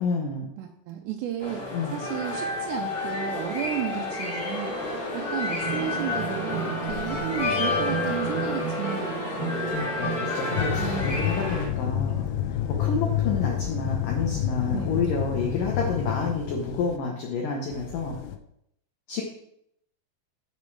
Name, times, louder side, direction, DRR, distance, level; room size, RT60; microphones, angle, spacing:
voice 1, 0.0-0.5 1.7-2.0 9.4-12.3 12.7-18.2 19.1-19.2, left 4 dB, 70° left, 0 dB, 2.1 m, -29 dB
voice 2, 0.6-4.8 5.1-9.4 10.8-11.3 14.7-15.0, right 10 dB, 80° right, 3 dB, 2.8 m, -33 dB
sound 1, 1.4-11.7, left 1 dB, 35° left, 5.1 m, -29 dB
sound 2, 10.5-17.0 17.7-18.4, left 11 dB, 85° left, 3.1 m, -29 dB
12.5 x 5.4 x 4.7 m, 0.75 s
omnidirectional pair, 5.2 m